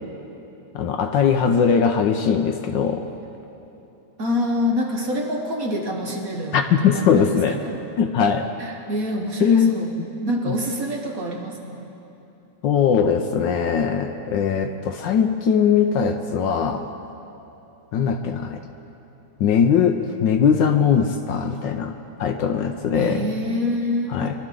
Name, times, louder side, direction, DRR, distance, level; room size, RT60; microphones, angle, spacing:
voice 1, 0.7-3.1 6.5-7.6 8.0-8.5 9.4-10.1 12.6-16.8 17.9-18.6 19.4-21.9 22.2-23.3 24.1-24.3, left 7 dB, 70° left, 6 dB, 1.2 m, -20 dB
voice 2, 4.2-7.8 8.6-11.9 22.9-24.2, left 1 dB, 50° right, 1 dB, 1.3 m, -26 dB
23.0 x 12.0 x 3.8 m, 3.0 s
omnidirectional pair, 2.3 m